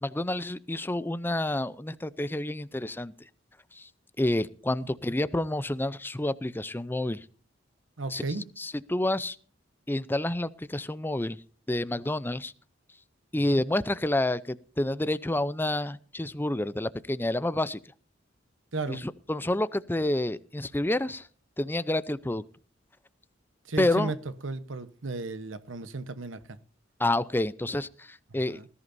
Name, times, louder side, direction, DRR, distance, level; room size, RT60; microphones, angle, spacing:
voice 1, 0.0-3.1 3.7-3.9 4.2-7.2 8.1-8.2 8.6-9.4 9.9-11.4 11.7-12.5 13.3-17.8 18.9-19.0 19.3-21.3 21.6-22.4 23.8-24.1 27.0-28.6, left 1 dB, 10° left, 0.6 m, -29 dB
voice 2, 8.0-8.4 13.3-13.6 18.7-19.0 23.7-24.2 24.4-26.6 28.3-28.7, right 3 dB, 90° right, 1.1 m, -35 dB
19.5 x 14.0 x 2.7 m
head